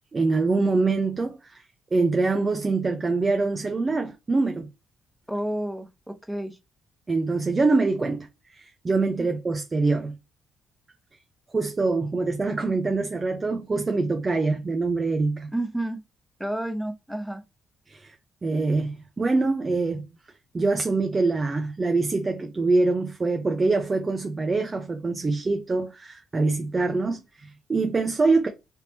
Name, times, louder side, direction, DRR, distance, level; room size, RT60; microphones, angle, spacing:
voice 1, 0.1-1.6 1.9-4.7 7.1-10.1 11.5-15.5 17.9-18.2 18.4-20.1 20.5-28.5, right 3 dB, 30° right, 0.6 m, -24 dB
voice 2, 5.3-6.6 9.2-9.3 15.5-16.0 16.4-17.4, right 1 dB, 5° right, 0.9 m, -30 dB
3.4 x 2.8 x 2.8 m
supercardioid pair, 65°, 0 cm